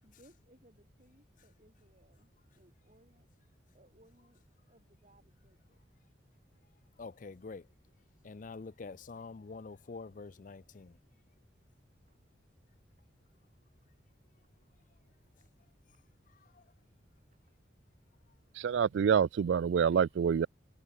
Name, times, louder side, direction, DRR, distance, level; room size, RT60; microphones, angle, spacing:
voice 1, 0.0-3.3 3.7-5.8 12.0-12.2 15.2-15.5 15.9-16.0 17.2-17.6, right 1 dB, 40° right, 6.1 m, -66 dB
voice 2, 7.0-7.7 8.2-11.0 16.4-16.6, left 4 dB, 45° left, 0.5 m, -46 dB
voice 3, 18.5-20.5, right 7 dB, 70° right, 0.3 m, -27 dB
head